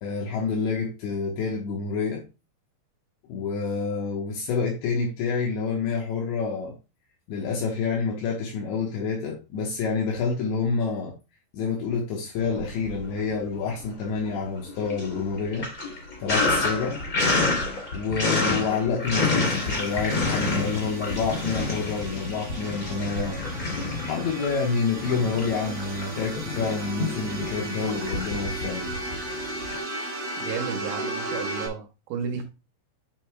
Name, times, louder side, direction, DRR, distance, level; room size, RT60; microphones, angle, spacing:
voice 1, 0.0-2.2 3.3-6.7 7.3-11.1 11.5-15.7 16.2-17.0 17.9-23.4 24.0-28.9, left 5 dB, 75° left, 3.2 m, -28 dB
Sink (filling or washing), 12.4-13.3 13.7-29.8, left 3 dB, 25° left, 2.5 m, -29 dB
sound 1, 19.1-31.7, right 1 dB, 35° right, 2.9 m, -36 dB
voice 2, 30.4-32.4, right 6 dB, 75° right, 2.9 m, -33 dB
9.4 x 5.3 x 2.3 m
omnidirectional pair, 5.5 m